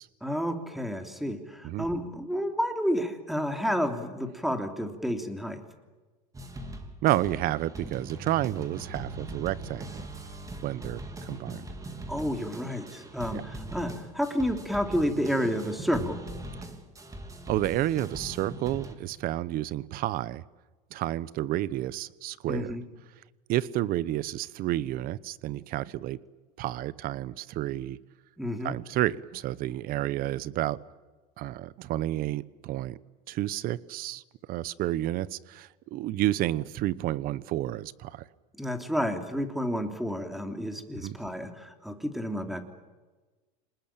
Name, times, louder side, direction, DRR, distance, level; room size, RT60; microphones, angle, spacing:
voice 1, 0.2-5.6 12.1-16.2 22.5-22.8 28.4-28.8 38.6-42.6, equal, ahead, 5 dB, 3.0 m, -30 dB
sound 1, 6.3-18.9, right 2 dB, 15° right, 3.3 m, -41 dB
voice 2, 7.0-10.1 10.6-11.6 13.3-13.4 17.5-20.4 20.9-22.7 23.5-26.2 26.6-28.0 28.6-30.8 31.4-33.0 33.3-34.2 34.5-38.2 40.9-41.2, right 14 dB, 50° right, 19 dB, 1.0 m, -30 dB
27.5 x 20.0 x 8.9 m, 1.3 s
supercardioid pair, 120°, 20 cm